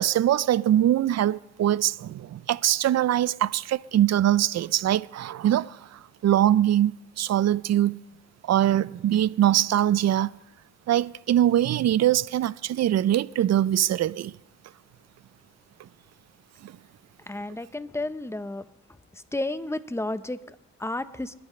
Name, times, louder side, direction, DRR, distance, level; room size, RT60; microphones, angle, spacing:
voice 1, 0.0-8.0 8.5-10.4 10.9-14.3 16.6-16.7, right 12 dB, 60° right, 0.5 m, -23 dB
voice 2, 17.3-18.7 19.1-21.3, left 2 dB, 10° left, 0.8 m, -32 dB
28.0 x 10.5 x 3.2 m
cardioid pair, 60°, 30 cm